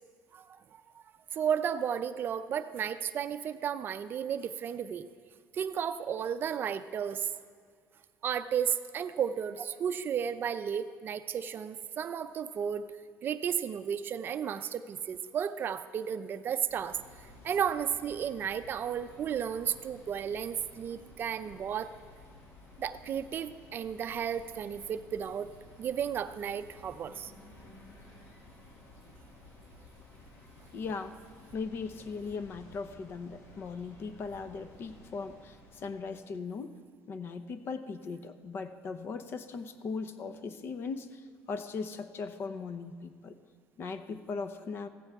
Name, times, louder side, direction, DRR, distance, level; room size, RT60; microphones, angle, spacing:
voice 1, 1.3-5.1 5.5-7.3 8.2-12.9 13.2-17.0 17.4-21.9 22.8-25.5 25.8-27.3, right 8 dB, 40° right, 11 dB, 0.5 m, -33 dB
sound 1, 16.7-36.0, left 2 dB, 60° left, 2.6 m, -54 dB
voice 2, 30.7-31.2 31.5-36.8 37.1-43.4 43.8-44.9, left 4 dB, 45° left, 11 dB, 0.8 m, -39 dB
16.0 x 15.0 x 3.6 m, 2.1 s
cardioid pair, 130°, 6 cm